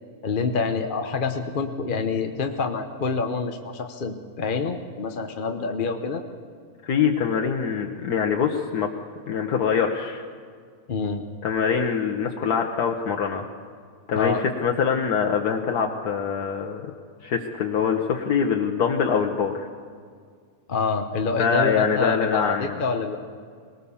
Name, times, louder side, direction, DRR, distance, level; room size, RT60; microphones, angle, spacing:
voice 1, 0.2-6.2 10.9-11.2 14.1-14.4 20.7-23.2, left 4 dB, 40° left, 5 dB, 1.0 m, -27 dB
voice 2, 6.8-8.9 9.3-10.2 11.4-13.4 14.1-16.9 17.2-19.7 21.3-22.8, left 6 dB, 90° left, 2 dB, 1.6 m, -24 dB
21.0 x 19.0 x 7.1 m, 2.1 s
omnidirectional pair, 1.6 m